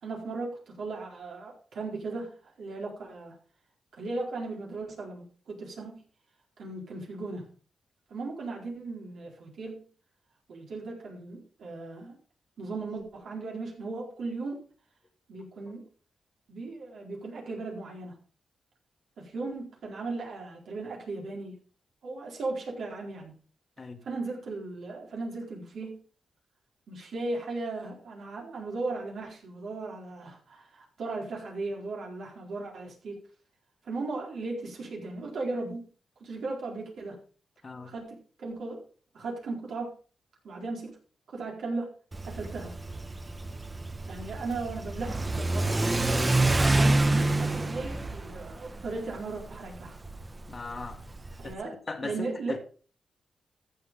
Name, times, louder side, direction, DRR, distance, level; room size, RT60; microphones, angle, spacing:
voice 1, 0.0-3.4 3.9-6.0 6.6-7.5 8.1-9.9 10.5-12.2 12.6-14.6 15.3-15.9 16.5-18.2 19.2-21.6 22.0-23.3 24.0-26.0 26.9-33.2 33.8-35.8 36.2-37.2 37.8-38.8 39.1-39.9 40.4-41.0 41.3-41.9 42.2-42.7 44.1-45.8 46.7-50.0 51.4-51.7 52.0-52.6, right 3 dB, 75° right, 4.3 m, -37 dB
voice 2, 37.6-37.9 50.5-51.0 51.4-52.6, left 3 dB, 45° left, 1.9 m, -38 dB
Car / Accelerating revving vroom, 42.1-51.5, right 2 dB, 30° right, 1.2 m, -28 dB
14.5 x 7.8 x 3.7 m
cardioid pair, 55°, 0 cm